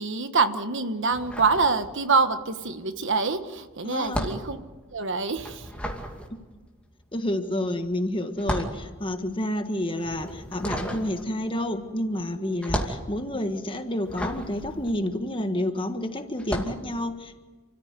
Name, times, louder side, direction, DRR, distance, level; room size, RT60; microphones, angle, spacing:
voice 1, 0.0-4.6 4.9-5.7, right 4 dB, 60° right, 9 dB, 1.3 m, -25 dB
sound 1, 1.1-2.3 2.6-15.8 16.3-16.9, equal, 5° left, 2.6 m, -34 dB
voice 2, 3.8-4.3 7.1-17.4, left 1 dB, 25° left, 7 dB, 1.6 m, -29 dB
29.5 x 14.0 x 9.7 m, 1.3 s
head